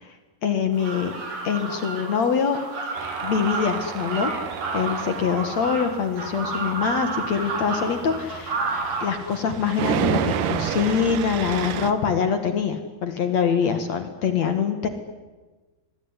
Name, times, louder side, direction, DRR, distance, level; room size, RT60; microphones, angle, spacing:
voice 1, 0.4-1.1 1.4-2.6 3.2-4.3 4.7-8.7 9.0-14.9, left 6 dB, 55° left, 8 dB, 2.3 m, -24 dB
sound 1, 0.7-9.1, right 3 dB, 40° right, 4.9 m, -31 dB
Tools, 3.0-11.9, right 8 dB, 65° right, 2.6 m, -31 dB
25.5 x 22.0 x 9.9 m, 1.2 s
omnidirectional pair, 4.9 m